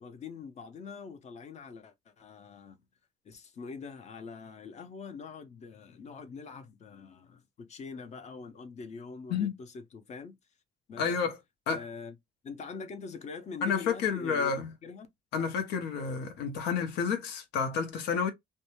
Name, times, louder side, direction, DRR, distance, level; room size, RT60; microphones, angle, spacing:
voice 1, 0.0-2.8 3.2-10.4 10.9-11.1 11.7-12.2 12.4-14.5 14.8-15.1, left 4 dB, 40° left, 0.6 m, -44 dB
voice 2, 11.0-11.4 11.7-11.8 13.6-14.7 15.3-18.3, left 6 dB, 85° left, 0.8 m, -30 dB
2.6 x 2.2 x 3.0 m
cardioid pair, 110°, 17 cm